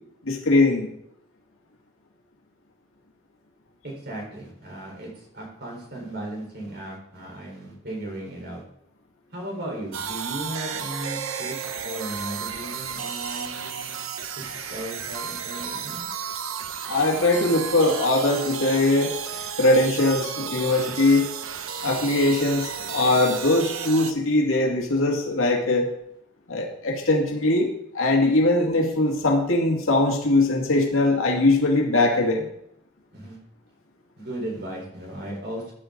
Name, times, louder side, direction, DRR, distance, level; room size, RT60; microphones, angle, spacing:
voice 1, 0.2-0.9 16.9-19.1 19.6-21.3 21.8-25.9 26.5-27.7 27.9-32.5, left 2 dB, 85° left, 0 dB, 2.2 m, -21 dB
voice 2, 3.8-8.6 9.3-11.6 11.8-14.0 14.4-16.1 33.1-33.4 34.2-35.7, right 1 dB, 50° right, -1 dB, 4.4 m, -36 dB
sound 1, 9.9-24.1, right 7 dB, 85° right, 0.9 m, -33 dB
14.5 x 10.0 x 3.9 m, 0.75 s
head